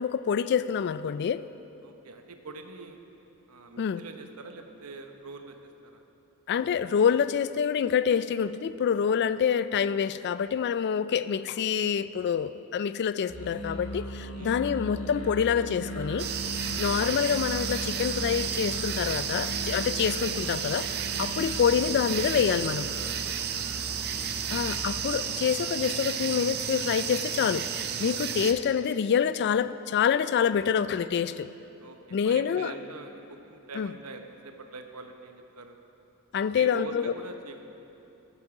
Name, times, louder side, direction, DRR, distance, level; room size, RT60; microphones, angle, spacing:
voice 1, 0.0-1.4 3.8-4.0 6.5-16.3 16.8-20.9 21.2-22.9 24.5-31.5 32.1-32.7 33.8-33.9 36.3-37.1, left 7 dB, 50° left, 14 dB, 0.3 m, -26 dB
voice 2, 1.8-3.0 3.5-6.0 11.5-11.9 14.3-14.6 16.5-16.9 21.1-21.2 23.3-24.7 31.8-35.8 36.5-37.6, right 3 dB, 80° right, 5 dB, 0.9 m, -44 dB
Musical instrument, 13.3-25.0, equal, 75° left, 1.4 m, -38 dB
sound 1, 16.2-28.5, right 8 dB, 45° right, 0.6 m, -32 dB
14.5 x 8.4 x 4.8 m, 2.9 s
head